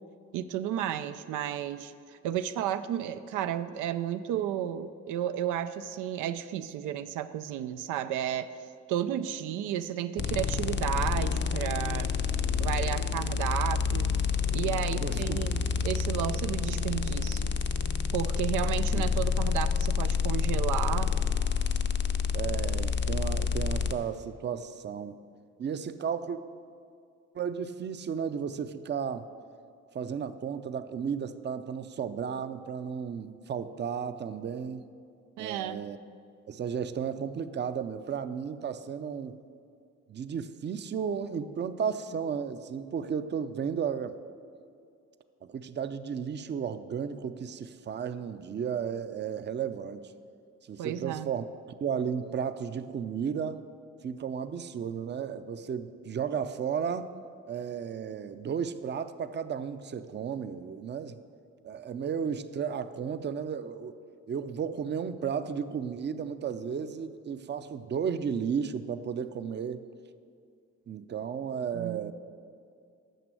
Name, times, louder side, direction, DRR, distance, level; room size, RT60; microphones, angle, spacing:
voice 1, 0.3-8.5 8.9-12.1 12.6-14.1 14.5-17.5 18.1-21.1 35.4-35.8 50.8-51.3 71.7-72.1, right 11 dB, 90° right, 10 dB, 0.5 m, -32 dB
sound 1, 10.2-23.9, left 6 dB, 40° left, 0.6 m, -28 dB
voice 2, 15.0-15.4 18.9-19.1 22.3-25.2 25.6-26.4 27.3-29.3 29.9-34.9 35.4-36.0 36.5-39.3 40.1-44.2 45.4-50.0 50.7-51.5 51.8-53.6 54.0-57.1 57.5-61.2 61.6-64.0 64.3-69.8 70.9-72.1, right 7 dB, 35° right, 11 dB, 0.5 m, -34 dB
9.2 x 6.1 x 7.6 m, 2.4 s
cardioid pair, 90°, 30 cm